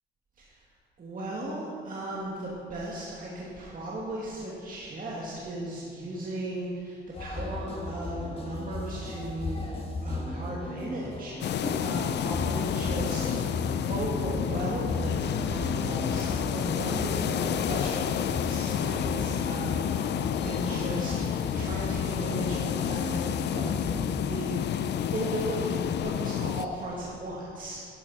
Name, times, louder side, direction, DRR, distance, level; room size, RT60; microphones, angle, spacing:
voice 1, 1.0-9.6 10.0-13.5 13.9-23.8 24.2-24.6 25.1-27.9, right 1 dB, 45° right, -5 dB, 2.1 m, -36 dB
sound 1, 7.1-24.1, left 2 dB, 30° left, 1.8 m, -36 dB
sound 2, 11.4-26.7, left 9 dB, 60° left, 0.5 m, -30 dB
12.0 x 11.0 x 4.2 m, 2.3 s
cardioid pair, 90°, 20 cm